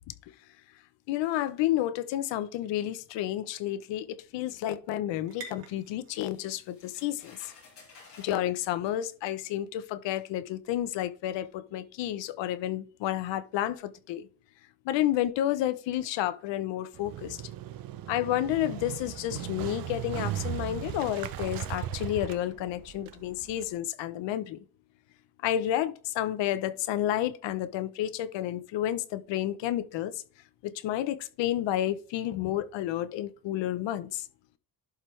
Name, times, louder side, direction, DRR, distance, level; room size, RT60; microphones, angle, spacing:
voice 1, 1.1-4.1 4.3-7.5 8.2-14.3 14.8-17.4 18.1-24.6 25.4-30.1 30.6-34.2, left 12 dB, 75° left, 0.9 m, -30 dB
sound 1, 2.1-9.6, right 3 dB, 70° right, 2.5 m, -54 dB
sound 2, 6.2-8.4 9.4-9.5 10.1-10.3, left 4 dB, 30° left, 4.2 m, -54 dB
Motorcycle, 17.0-23.7, right 11 dB, 55° right, 0.7 m, -37 dB
11.5 x 4.6 x 3.3 m
cardioid pair, 175°, 44 cm